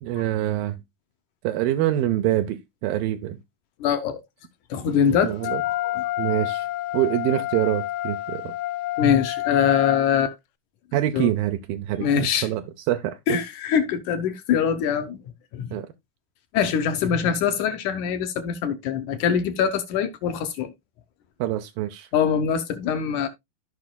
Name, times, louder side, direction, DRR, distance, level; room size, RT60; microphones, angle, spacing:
voice 1, 0.0-0.8 1.4-3.4 5.2-5.6 6.2-6.7 6.9-8.5 10.9-13.4 15.7-15.9 21.4-22.1, right 13 dB, 85° right, 2.5 m, -25 dB
voice 2, 3.8-4.2 4.7-5.4 5.7-6.1 9.0-10.3 11.1-11.3 12.0-12.5 13.3-15.2 15.5-15.8 16.5-20.7 22.1-23.3, left 8 dB, 70° left, 2.0 m, -23 dB
Wind instrument woodwind instrument, 5.4-10.0, left 16 dB, 90° left, 2.4 m, -28 dB
14.5 x 5.6 x 2.2 m
omnidirectional pair, 4.1 m